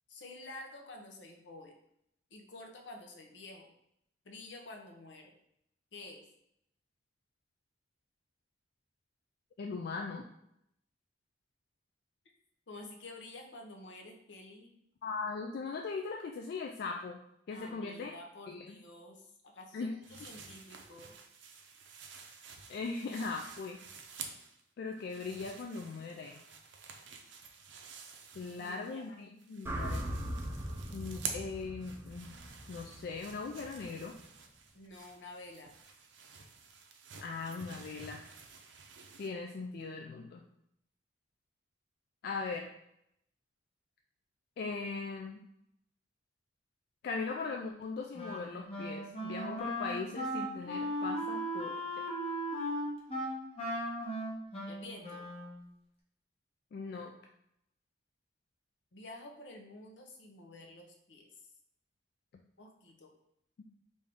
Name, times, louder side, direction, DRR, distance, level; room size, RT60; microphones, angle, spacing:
voice 1, 0.1-1.7 2.3-3.7 4.2-5.3 5.9-6.2 12.7-14.8 17.5-21.1 28.6-29.0 34.7-35.8 54.7-55.3 58.9-61.3 62.6-63.1, left 2 dB, 80° left, 2 dB, 0.7 m, -50 dB
voice 2, 9.6-10.2 15.0-17.2 17.5-18.1 18.5-18.8 19.7-19.9 22.7-23.8 24.8-26.4 28.3-30.0 30.9-32.3 32.7-34.2 37.2-38.2 39.2-40.4 42.2-42.7 44.6-45.4 47.0-52.1 56.7-57.1, left 4 dB, 60° left, 2 dB, 0.3 m, -39 dB
sound 1, 20.0-24.6 24.9-29.1 29.4-39.3, right 6 dB, 85° right, 0.5 m, -49 dB
sound 2, 29.7-33.9, equal, 15° right, 0.4 m, -40 dB
Wind instrument woodwind instrument, 48.2-55.6, equal, 35° left, 0.9 m, -37 dB
3.4 x 2.6 x 3.6 m, 0.78 s
head